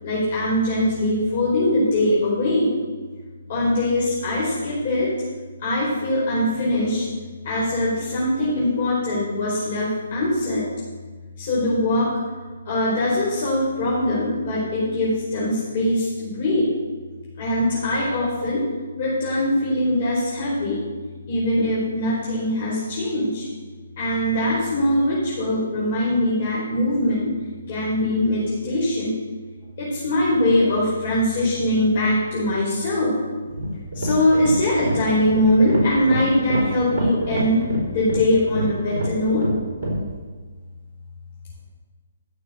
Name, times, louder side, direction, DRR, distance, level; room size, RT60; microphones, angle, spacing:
voice 1, 0.0-2.7 3.5-5.1 5.6-7.1 7.4-10.6 11.4-12.1 12.6-16.7 17.4-18.6 19.0-20.8 21.3-23.4 24.0-27.3 27.7-29.1 29.8-33.1 33.9-37.6 37.9-39.5, left 1 dB, 50° left, -7 dB, 4.7 m, -22 dB
sound 1, 33.4-40.1, right 1 dB, 50° right, 4.6 m, -27 dB
15.0 x 6.8 x 7.1 m, 1.4 s
figure-of-eight pair, 140°, 0 cm